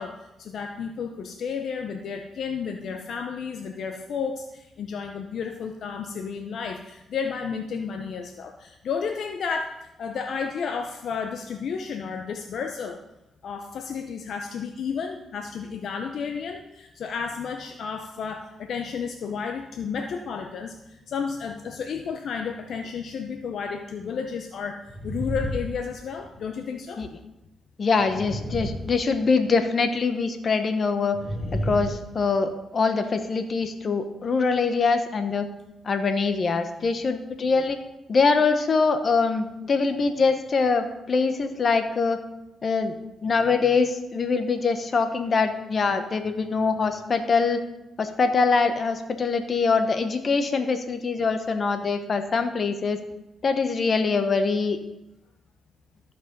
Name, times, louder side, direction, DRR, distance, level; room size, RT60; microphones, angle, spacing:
voice 1, 0.0-9.7 10.0-13.0 13.4-27.0, left 6 dB, 70° left, 5 dB, 0.8 m, -32 dB
sound 1, 24.9-26.5 27.9-29.6 31.1-32.4, equal, 35° left, 3.0 m, -32 dB
voice 2, 27.8-31.2 31.5-35.5 35.8-37.8 38.1-42.2 42.6-43.0 43.2-47.6 48.0-53.0 53.4-54.8, left 4 dB, 50° left, 8 dB, 1.2 m, -23 dB
14.0 x 5.3 x 5.4 m, 0.93 s
cardioid pair, 65°, 0 cm